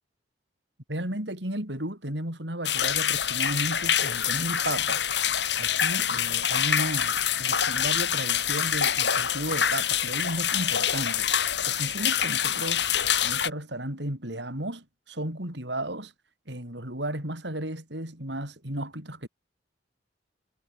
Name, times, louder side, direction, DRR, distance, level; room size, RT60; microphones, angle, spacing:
voice 1, 0.9-5.0 5.6-11.3 11.7-12.9 13.2-16.1 16.5-19.3, right 1 dB, 70° right, 8.0 m, -34 dB
sound 1, 2.6-13.5, left 9 dB, 65° left, 4.2 m, -26 dB
head